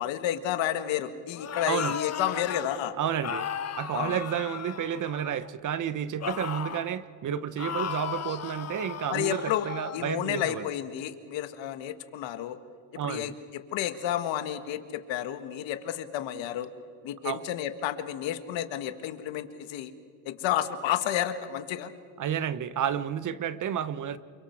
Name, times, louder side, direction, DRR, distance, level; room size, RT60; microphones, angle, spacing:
voice 1, 0.0-2.9 3.9-4.2 9.1-9.7 9.9-12.6 13.0-13.3 13.7-16.7 17.0-19.9 20.2-21.9, left 11 dB, 65° left, 9 dB, 1.8 m, -31 dB
sound 1, 1.3-2.7 3.2-5.5 6.2-6.9 7.6-10.1, left 8 dB, 30° left, 1.4 m, -36 dB
voice 2, 1.6-2.0 3.0-3.5 3.8-10.7 13.0-13.3 17.2-17.4 22.2-24.2, right 9 dB, 40° right, 15 dB, 0.8 m, -31 dB
28.5 x 24.0 x 4.7 m, 2.3 s
cardioid pair, 120°, 49 cm